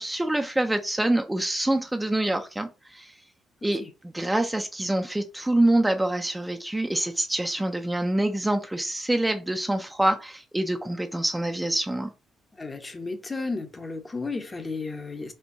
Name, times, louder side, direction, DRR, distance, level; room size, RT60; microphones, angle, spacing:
voice 1, 0.0-3.2 3.6-12.1, right 1 dB, 10° right, 0.4 m, -26 dB
voice 2, 12.6-15.3, left 3 dB, 25° left, 0.7 m, -33 dB
4.4 x 2.2 x 2.6 m
cardioid pair, 90°, 0 cm